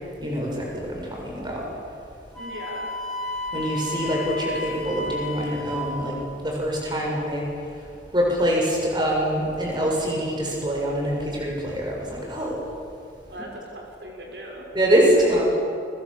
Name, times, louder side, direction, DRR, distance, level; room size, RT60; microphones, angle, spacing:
voice 1, 0.2-1.6 3.5-6.1 6.4-7.4 8.1-12.6 14.7-15.5, equal, 25° right, -1 dB, 7.0 m, -24 dB
Wind instrument woodwind instrument, 2.3-5.9, left 2 dB, ahead, 5.6 m, -32 dB
voice 2, 2.4-2.9 13.3-14.7 15.2-15.5, right 1 dB, 75° right, 0 dB, 5.7 m, -38 dB
29.5 x 25.0 x 7.5 m, 2.4 s
head